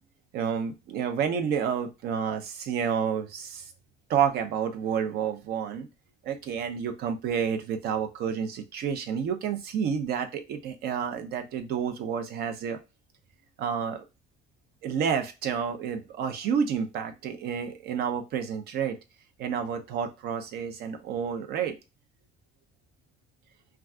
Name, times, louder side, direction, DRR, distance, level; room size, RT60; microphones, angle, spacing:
voice 1, 0.3-3.7 4.1-5.9 6.2-12.8 13.6-14.0 14.8-19.0 19.4-21.7, right 7 dB, 70° right, 6 dB, 0.6 m, -30 dB
2.4 x 2.3 x 3.6 m, 0.26 s
cardioid pair, 110°, 17 cm